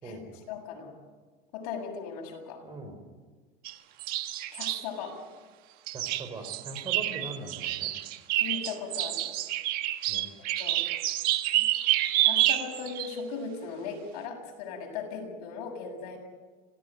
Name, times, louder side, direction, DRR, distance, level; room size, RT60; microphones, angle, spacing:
voice 1, 0.5-0.9 1.5-2.6 4.5-5.2 8.4-9.2 10.6-10.9 11.5-11.6 12.2-16.2, left 5 dB, 85° left, 2 dB, 7.5 m, -38 dB
voice 2, 2.6-3.0 5.9-7.9 10.1-10.2, right 2 dB, 20° right, 6 dB, 4.5 m, -41 dB
sound 1, 3.6-3.7 4.0-4.9 5.9-13.1, right 15 dB, 50° right, 1.4 m, -28 dB
26.5 x 17.5 x 9.4 m, 1.4 s
cardioid pair, 165°, 19 cm